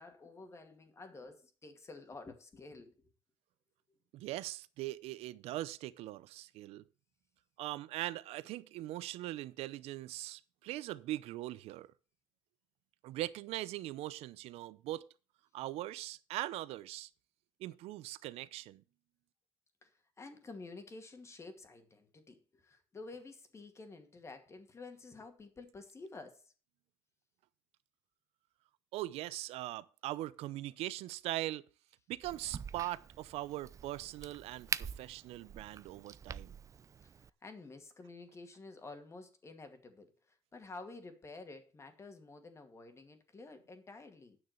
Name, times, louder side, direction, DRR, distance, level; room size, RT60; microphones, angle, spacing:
voice 1, 0.0-2.9 19.8-26.5 37.0-44.4, left 3 dB, 25° left, 2.2 m, -51 dB
voice 2, 4.1-6.8 7.6-11.9 13.0-15.1 15.5-17.1 17.6-18.8 28.9-31.6 32.1-36.6, right 16 dB, 80° right, 0.6 m, -41 dB
Crack, 32.2-37.3, right 7 dB, 30° right, 0.4 m, -44 dB
9.5 x 6.5 x 6.6 m
cardioid pair, 105°, 10 cm